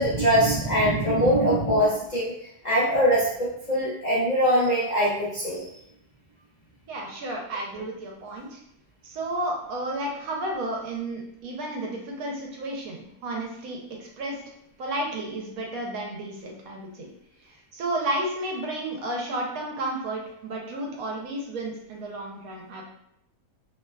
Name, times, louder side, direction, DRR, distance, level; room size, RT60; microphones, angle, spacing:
voice 1, 0.0-2.3 2.6-5.6, equal, 65° left, -9 dB, 0.4 m, -22 dB
voice 2, 6.9-8.6 9.0-14.4 14.8-17.1 17.4-22.8, right 1 dB, 70° right, 0 dB, 1.0 m, -32 dB
2.9 x 2.2 x 2.2 m, 0.77 s
omnidirectional pair, 1.6 m